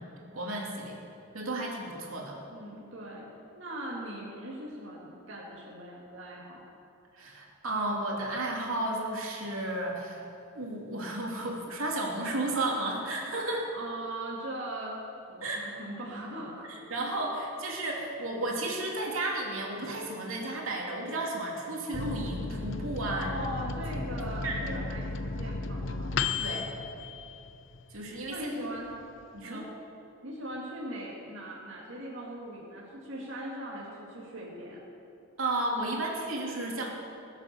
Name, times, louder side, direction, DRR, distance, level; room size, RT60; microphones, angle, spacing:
voice 1, 0.3-1.0 1.3-2.4 7.1-10.2 10.5-13.7 15.4-15.7 16.7-23.3 24.4-24.7 26.4-26.7 27.9-28.5 29.3-29.6 35.4-36.9, right 2 dB, 75° right, -2 dB, 2.8 m, -33 dB
voice 2, 2.5-3.3 3.6-6.6 13.7-15.0 15.3-16.7 17.1-17.2 23.2-26.1 28.3-28.9 29.4-29.6 30.2-34.8, right 1 dB, 60° right, -5 dB, 2.4 m, -40 dB
Microwave oven, 21.9-28.0 28.4-28.5 28.8-29.4, left 3 dB, 60° left, 0.6 m, -34 dB
20.0 x 8.3 x 6.9 m, 2.7 s
head